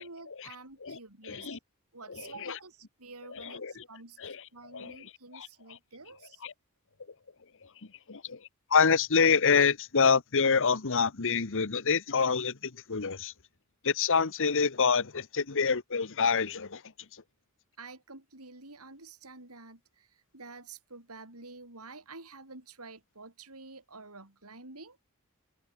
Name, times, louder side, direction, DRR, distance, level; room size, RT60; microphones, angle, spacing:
voice 1, 0.0-1.6 1.9-6.4 17.8-25.0, right 3 dB, 80° right, 6.1 m, -49 dB
voice 2, 1.3-1.6 2.5-2.6 3.6-3.7 4.2-4.4 4.7-4.9 5.3-5.5 6.4-6.5 8.1-8.4 8.7-13.3 13.8-16.8, left 5 dB, 60° left, 1.2 m, -26 dB
open air
head